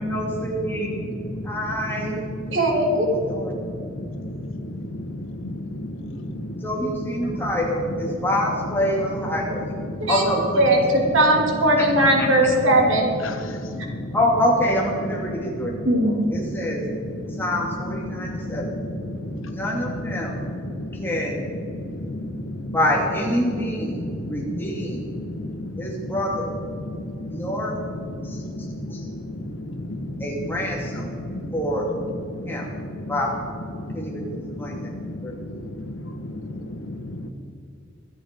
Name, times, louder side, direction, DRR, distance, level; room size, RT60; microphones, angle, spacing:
voice 1, 0.0-1.1 1.4-2.2 3.3-3.5 6.6-9.7 10.1-10.6 11.8-11.9 12.2-12.3 14.1-15.7 16.3-16.9 17.3-18.7 19.4-20.4 20.9-21.5 22.7-25.1 25.8-26.5 27.3-27.7 28.2-29.1 30.2-31.2 31.5-31.9 32.4-32.7 33.1-33.3 33.9-34.2 34.6-34.9 35.2-35.4, equal, 10° left, -2 dB, 2.7 m, -26 dB
voice 2, 1.2-1.6 2.0-2.6 3.1-6.6 7.2-7.5 7.9-8.2 9.9-10.1 13.2-14.2 15.4-15.9 16.4-17.4 18.0-19.8 20.1-21.1 21.6-22.8 23.9-26.2 26.7-27.5 27.9-30.3 30.9-31.6 32.3-33.1 33.7-37.3, left 1 dB, 85° left, 6 dB, 1.6 m, -33 dB
voice 3, 2.5-3.0 10.0-10.2 10.6-13.1 13.7-13.8 15.8-16.3, right 1 dB, 75° right, 0 dB, 3.1 m, -19 dB
23.5 x 8.3 x 5.4 m, 2.5 s
head